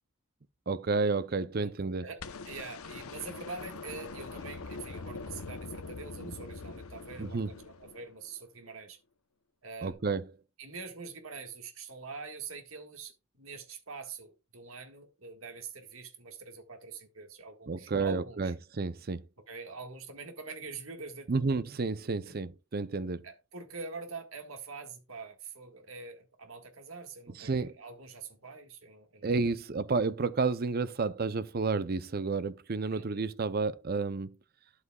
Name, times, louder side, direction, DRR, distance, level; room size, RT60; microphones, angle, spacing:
voice 1, 0.7-2.1 6.2-6.3 7.2-7.5 9.8-10.3 17.7-19.3 21.3-23.3 27.4-27.7 29.2-34.3, right 4 dB, 45° right, 0.6 m, -31 dB
sound 1, 2.2-8.4 9.9-10.0, left 3 dB, 90° left, 0.9 m, -43 dB
voice 2, 2.5-9.0 9.6-10.0 10.6-18.5 19.5-21.3 22.3-22.4 23.2-29.3 32.9-33.2, right 4 dB, 75° right, 1.7 m, -44 dB
12.0 x 8.2 x 2.3 m
head